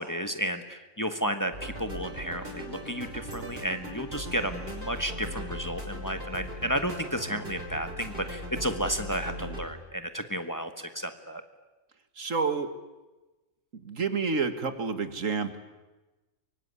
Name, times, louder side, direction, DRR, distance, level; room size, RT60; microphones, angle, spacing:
voice 1, 0.0-11.4, equal, 15° left, 8 dB, 1.5 m, -32 dB
sound 1, 1.5-9.7, equal, 45° right, 5.8 m, -39 dB
voice 2, 12.2-12.7 13.8-15.6, right 5 dB, 75° right, 10 dB, 2.2 m, -29 dB
24.5 x 23.0 x 9.8 m, 1.1 s
omnidirectional pair, 1.4 m